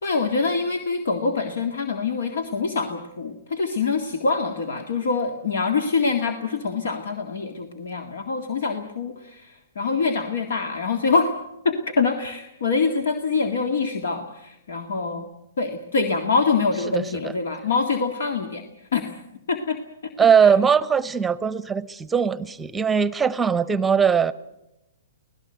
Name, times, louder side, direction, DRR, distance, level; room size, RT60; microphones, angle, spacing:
voice 1, 0.0-11.3 11.6-15.3 15.6-18.7 18.9-19.2 19.5-19.8 20.4-20.5, left 4 dB, 75° left, 6 dB, 2.0 m, -25 dB
voice 2, 20.2-24.3, right 7 dB, 10° right, 17 dB, 0.9 m, -20 dB
25.5 x 17.5 x 8.0 m, 0.90 s
hypercardioid pair, 130°, 0 cm